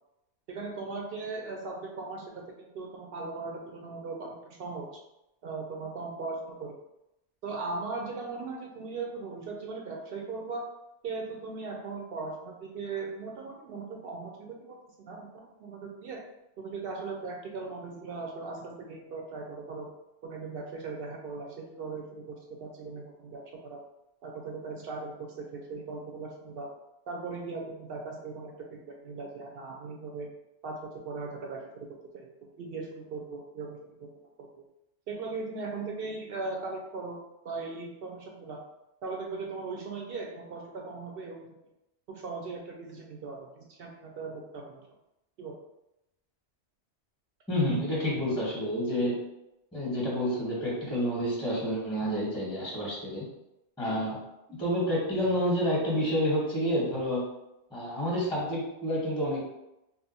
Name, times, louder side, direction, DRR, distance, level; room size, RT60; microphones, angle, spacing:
voice 1, 0.5-4.9 5.4-6.8 7.4-10.6 11.0-16.2 16.6-19.9 20.2-23.8 24.2-26.7 27.1-30.3 30.6-31.9 32.1-32.3 32.6-34.1 34.4-34.5 35.1-37.2 37.4-38.6 39.0-41.7 42.1-44.8 45.4-45.6 47.7-47.8, right 4 dB, 65° right, 0 dB, 0.7 m, -38 dB
voice 2, 47.5-49.2 49.7-53.3 53.8-54.2 54.5-57.3 57.7-59.4, equal, 5° left, -6 dB, 0.9 m, -29 dB
2.7 x 2.1 x 4.0 m, 0.89 s
omnidirectional pair, 1.2 m